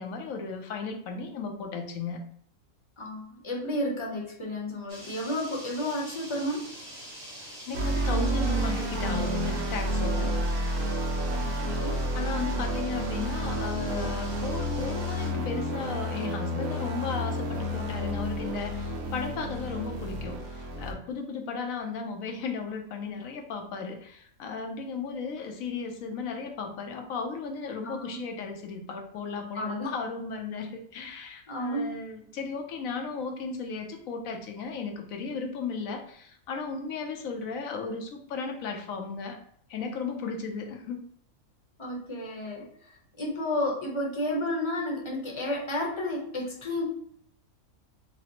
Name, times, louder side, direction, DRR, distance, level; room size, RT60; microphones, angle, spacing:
voice 1, 0.0-2.2 7.6-10.4 12.1-39.4 39.7-41.0, left 5 dB, 70° left, 4 dB, 1.1 m, -35 dB
voice 2, 3.0-6.7 11.3-12.0 27.8-28.2 29.5-29.9 31.5-31.9 41.8-46.8, left 1 dB, 25° left, -1 dB, 0.7 m, -32 dB
sound 1, 4.9-15.3, equal, 55° right, 1.9 m, -46 dB
sound 2, 7.7-20.9, equal, 85° right, 1.4 m, -30 dB
5.6 x 2.0 x 2.9 m, 0.65 s
omnidirectional pair, 1.5 m